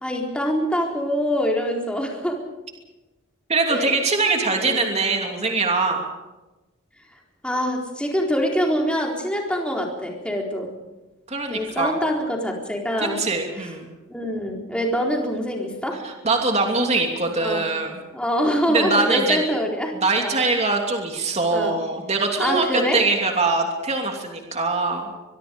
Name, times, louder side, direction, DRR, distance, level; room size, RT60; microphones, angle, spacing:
voice 1, 0.0-2.4 3.7-4.0 4.5-4.8 7.4-10.7 11.5-13.2 14.1-16.0 17.4-17.7 18.1-20.4 21.5-21.8 22.4-23.0, equal, 5° left, 0 dB, 4.1 m, -25 dB
voice 2, 3.5-6.1 11.3-12.0 13.0-13.9 16.0-17.9 18.7-19.4 20.0-25.1, right 3 dB, 30° right, 2 dB, 2.9 m, -22 dB
24.0 x 22.5 x 5.3 m, 1.1 s
head